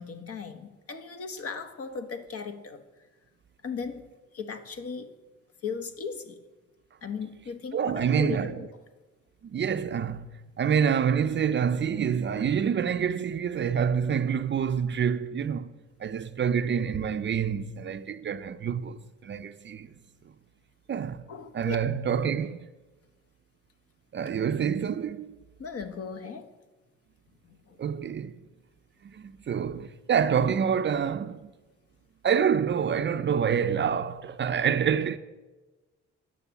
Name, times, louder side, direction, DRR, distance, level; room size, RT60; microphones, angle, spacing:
voice 1, 0.0-2.8 3.6-4.1 4.3-5.1 5.6-6.4 7.0-8.7 21.3-21.8 25.6-26.5 27.4-27.8, left 5 dB, 50° left, 1.1 m, -37 dB
voice 2, 7.7-8.7 9.4-15.7 16.0-19.9 20.9-21.2 21.5-22.7 24.1-25.4 27.8-28.4 29.0-31.5 32.2-35.2, right 7 dB, 40° right, 0.5 m, -27 dB
9.5 x 6.3 x 7.0 m
cardioid pair, 90°, 30 cm